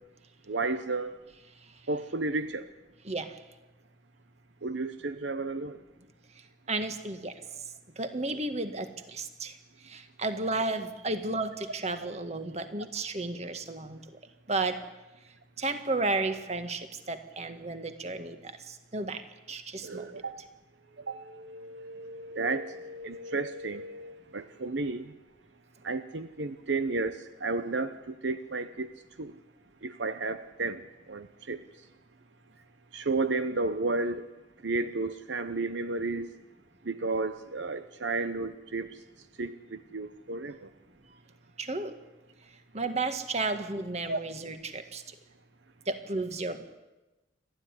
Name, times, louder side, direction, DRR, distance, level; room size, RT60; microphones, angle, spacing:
voice 1, 0.5-1.1 1.9-2.7 4.6-5.8 19.8-20.4 21.0-25.1 25.8-29.4 29.8-31.6 32.9-34.2 34.6-36.3 36.8-39.0 39.4-40.7 44.1-44.2, right 3 dB, 75° right, 11 dB, 0.9 m, -33 dB
voice 2, 6.7-7.3 8.0-9.5 9.9-14.0 14.5-14.8 15.6-19.2 19.5-20.1 41.6-41.9 42.7-45.0 45.9-46.6, right 3 dB, 35° right, 8 dB, 1.8 m, -33 dB
28.5 x 12.5 x 9.8 m, 1.1 s
head